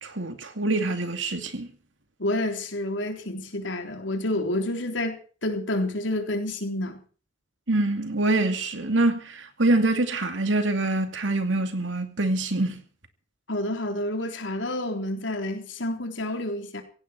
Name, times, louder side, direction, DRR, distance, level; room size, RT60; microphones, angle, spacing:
voice 1, 0.0-1.7 7.7-12.8, right 2 dB, 85° right, 2.5 m, -25 dB
voice 2, 2.2-7.0 13.5-16.8, left 1 dB, 80° left, 3.8 m, -29 dB
17.0 x 16.5 x 4.5 m
head